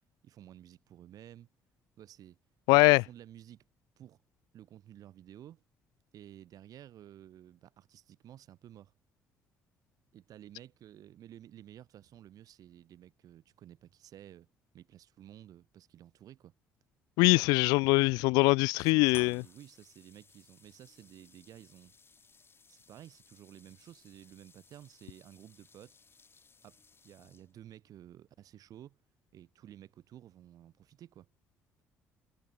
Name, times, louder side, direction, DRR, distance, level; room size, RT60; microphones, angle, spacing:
voice 1, 0.2-1.5 2.0-2.4 2.7-3.6 4.0-4.2 4.5-5.6 6.1-8.9 10.1-14.5 14.7-16.5 18.7-21.9 22.7-26.0 26.6-29.0 29.3-31.3, right 11 dB, 65° right, 6.8 m, -53 dB
voice 2, 2.7-3.0 17.2-19.4, left 26 dB, 80° left, 0.4 m, -23 dB
sound 1, 19.1-27.7, left 4 dB, 35° left, 7.4 m, -59 dB
hypercardioid pair, 55°, 7 cm